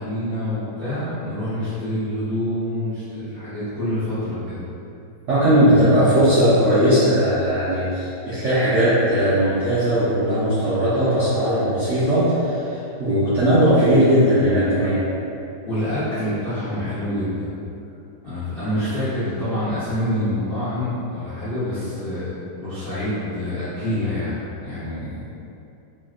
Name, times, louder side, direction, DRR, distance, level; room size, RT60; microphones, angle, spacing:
voice 1, 0.0-4.6 15.6-17.5 18.2-24.4 24.6-25.2, left 1 dB, 60° left, -15 dB, 0.6 m, -26 dB
voice 2, 5.3-15.0, equal, 70° right, -13 dB, 0.7 m, -18 dB
3.4 x 2.2 x 2.4 m, 2.7 s
omnidirectional pair, 2.0 m